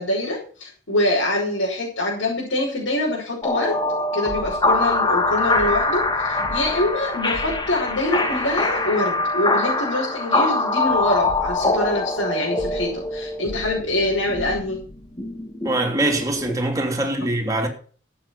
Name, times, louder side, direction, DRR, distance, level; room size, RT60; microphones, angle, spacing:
voice 1, 0.0-3.8 4.1-14.8, left 1 dB, 90° left, 5.8 m, -25 dB
sound 1, 3.4-16.5, left 2 dB, 25° left, 2.0 m, -23 dB
voice 2, 15.6-17.7, right 1 dB, 20° right, 3.1 m, -23 dB
13.5 x 8.6 x 5.9 m
head